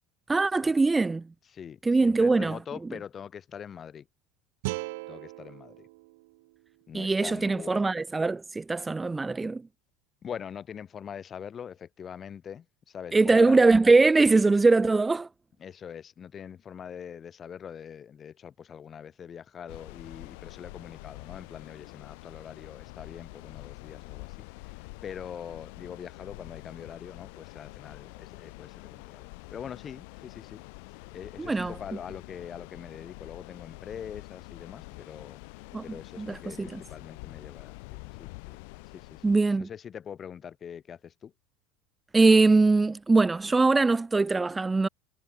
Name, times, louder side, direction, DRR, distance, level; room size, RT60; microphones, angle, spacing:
voice 1, 0.3-1.2 1.8-2.6 6.9-9.6 13.1-15.3 31.4-31.7 35.7-35.8 36.2-36.8 39.2-39.7 42.1-44.9, right 3 dB, 15° right, 0.6 m, -22 dB
voice 2, 1.5-4.1 5.1-5.9 6.9-7.9 10.2-13.6 15.6-24.4 25.0-30.6 31.1-35.4 35.8-38.6 38.9-39.2 39.5-41.3, left 8 dB, 35° left, 5.2 m, -43 dB
sound 1, 4.6-7.7, right 24 dB, 65° right, 0.5 m, -40 dB
sound 2, 19.7-39.4, left 31 dB, 65° left, 3.1 m, -46 dB
hypercardioid pair, 80°, 0 cm